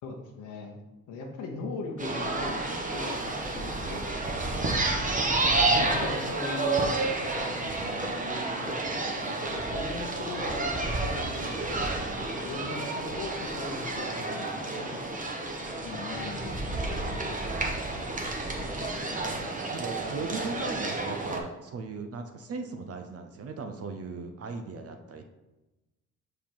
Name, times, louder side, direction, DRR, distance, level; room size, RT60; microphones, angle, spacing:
voice 1, 0.0-0.8 1.1-2.6 2.9-4.5 5.7-6.9 7.2-15.5 15.8-17.4, left 3 dB, 85° left, 1 dB, 1.0 m, -40 dB
sound 1, 2.0-21.4, right 2 dB, 25° right, 1.1 m, -30 dB
voice 2, 5.5-6.3 17.7-19.4 19.7-25.3, right 4 dB, 50° right, 6 dB, 0.7 m, -38 dB
5.5 x 5.0 x 4.5 m, 1.0 s
cardioid pair, 90°, 30 cm